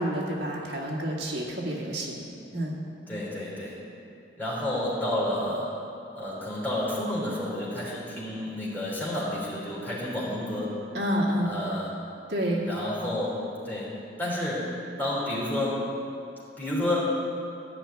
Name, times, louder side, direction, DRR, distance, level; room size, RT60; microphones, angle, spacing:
voice 1, 0.0-2.2 2.5-2.8 10.9-11.5 12.3-12.6, equal, 70° right, -3 dB, 2.1 m, -28 dB
voice 2, 3.1-3.7 4.4-5.7 6.1-10.7 11.4-11.9 12.6-13.4 13.6-13.9 14.2-14.7 15.0-15.8 16.6-17.1, left 1 dB, 10° left, -7 dB, 3.4 m, -30 dB
12.5 x 5.9 x 9.2 m, 2.6 s
head